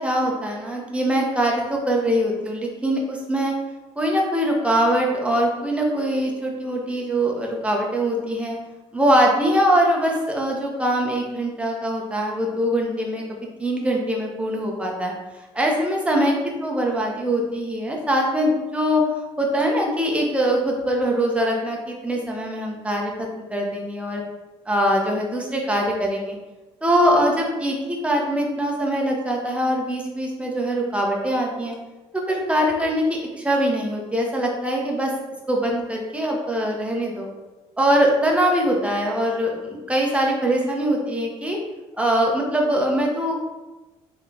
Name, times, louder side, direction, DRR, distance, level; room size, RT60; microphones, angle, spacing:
voice 1, 0.0-3.5 4.0-8.6 8.9-15.1 15.5-16.4 16.6-19.0 19.4-24.2 24.7-26.4 26.8-31.7 32.3-33.0 33.4-35.1 35.5-37.3 37.8-41.6 42.0-43.4, equal, 10° right, -1 dB, 1.0 m, -22 dB
3.5 x 3.3 x 2.9 m, 1.1 s
hypercardioid pair, 60°, 14 cm